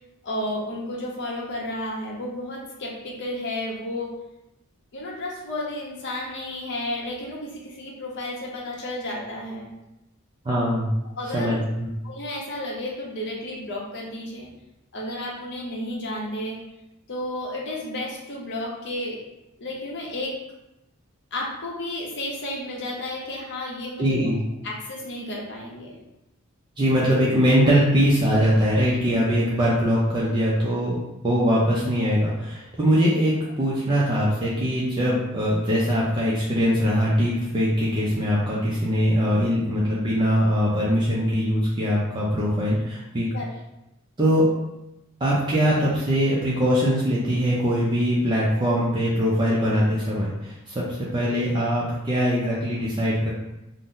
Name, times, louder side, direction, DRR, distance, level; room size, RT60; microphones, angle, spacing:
voice 1, 0.2-4.1 4.9-9.7 11.2-11.6 12.0-14.5 14.9-16.6 17.1-19.2 19.6-20.4 21.3-24.3 24.6-26.0 43.3-43.5, left 1 dB, 55° left, -2 dB, 0.7 m, -32 dB
voice 2, 10.4-10.9 11.3-11.9 24.0-24.4 26.8-43.3 44.2-44.5 45.2-53.3, equal, 20° right, -6 dB, 0.4 m, -22 dB
2.6 x 2.0 x 3.6 m, 0.91 s
head